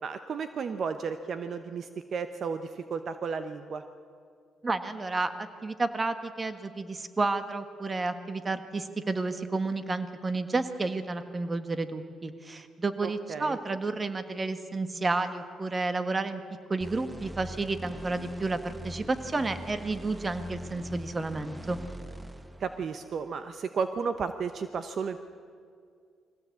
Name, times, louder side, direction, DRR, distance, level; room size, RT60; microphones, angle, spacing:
voice 1, 0.0-3.8 13.0-13.6 22.6-25.2, right 5 dB, 55° right, 10 dB, 0.9 m, -33 dB
voice 2, 4.6-16.4 16.7-21.8, right 3 dB, 25° right, 10 dB, 1.5 m, -31 dB
sound 1, 16.8-23.3, equal, 10° right, 0.9 m, -43 dB
22.5 x 16.5 x 8.5 m, 2.3 s
cardioid pair, 90°, 0 cm